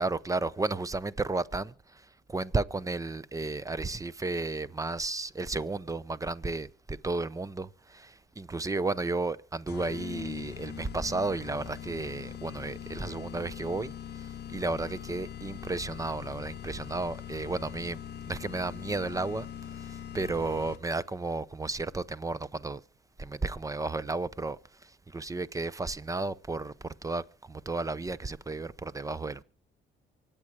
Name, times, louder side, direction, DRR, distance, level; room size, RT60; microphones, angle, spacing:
voice 1, 0.0-1.7 2.3-18.0 18.3-22.8 23.2-29.4, right 3 dB, 15° right, 0.7 m, -33 dB
sound 1, 9.7-21.1, left 9 dB, 55° left, 0.7 m, -42 dB
24.5 x 8.8 x 4.8 m
cardioid pair, 90°, 20 cm